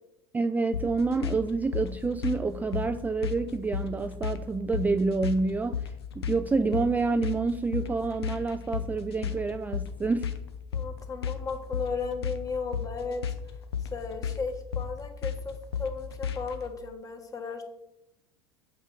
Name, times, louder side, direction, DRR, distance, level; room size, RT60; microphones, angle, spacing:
voice 1, 0.3-10.3, right 3 dB, 15° right, 10 dB, 0.3 m, -28 dB
sound 1, 0.7-16.6, left 7 dB, 80° left, 0.8 m, -34 dB
voice 2, 10.7-13.2 13.9-17.6, left 4 dB, 25° left, 5 dB, 1.4 m, -35 dB
7.1 x 5.4 x 4.8 m, 0.91 s
hypercardioid pair, 80°, 13 cm